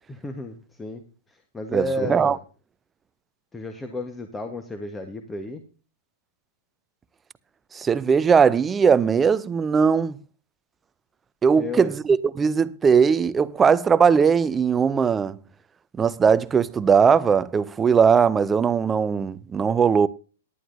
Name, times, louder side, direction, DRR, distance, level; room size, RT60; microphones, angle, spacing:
voice 1, 0.2-1.0 1.3-2.4 3.5-5.6 11.6-11.9, left 1 dB, 10° left, 1.2 m, -32 dB
voice 2, 7.7-10.1 11.4-15.4 16.0-20.1, right 6 dB, 15° right, 0.5 m, -19 dB
18.0 x 11.0 x 2.7 m
figure-of-eight pair, 110°, 0 cm